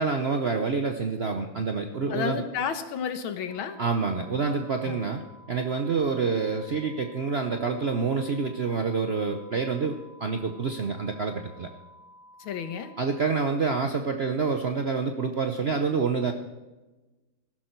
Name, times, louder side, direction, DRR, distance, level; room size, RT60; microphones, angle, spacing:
voice 1, 0.0-2.4 3.8-5.2 5.5-11.7 13.0-16.3, right 5 dB, 80° right, 5 dB, 0.5 m, -27 dB
voice 2, 2.1-3.8 4.8-5.0 12.4-12.9, left 7 dB, 70° left, 9 dB, 1.9 m, -31 dB
sound 1, 3.5-13.5, equal, 40° right, 4.5 m, -53 dB
15.5 x 12.5 x 4.5 m, 1.1 s
omnidirectional pair, 2.4 m